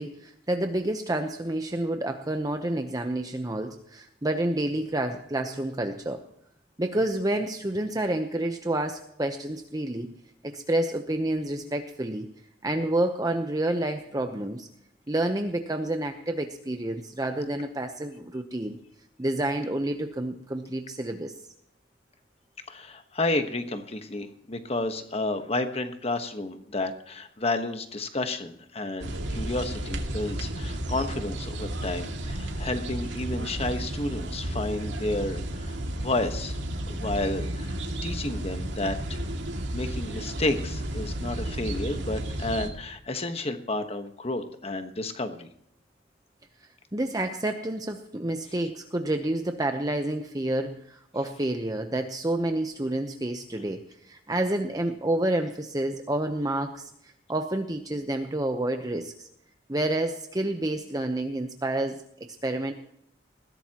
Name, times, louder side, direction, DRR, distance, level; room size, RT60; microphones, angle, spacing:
voice 1, 0.0-6.2 6.8-10.1 10.4-12.3 12.6-14.7 15.1-18.8 19.2-21.3 46.9-56.9 57.3-59.3 59.7-62.0 62.4-62.7, right 1 dB, 20° right, 5 dB, 0.9 m, -29 dB
voice 2, 22.7-36.6 36.9-37.8 38.0-39.2 39.7-45.5, left 2 dB, 35° left, 7 dB, 1.3 m, -31 dB
sound 1, 29.0-42.7, right 1 dB, 90° right, 2.3 m, -33 dB
20.5 x 16.0 x 3.0 m, 0.72 s
head